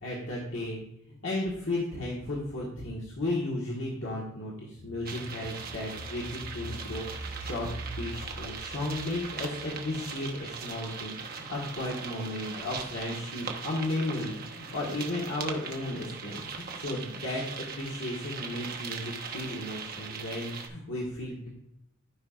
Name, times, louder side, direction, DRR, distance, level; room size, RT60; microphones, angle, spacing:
voice 1, 0.0-0.8 1.2-7.7 8.0-21.5, left 1 dB, 65° left, -4 dB, 1.6 m, -34 dB
sound 1, 4.8-10.4 10.8-10.9, right 1 dB, 90° left, 2.9 m, -43 dB
sound 2, 5.0-20.7, right 6 dB, 45° right, 0.9 m, -40 dB
13.0 x 5.4 x 2.5 m, 0.82 s
head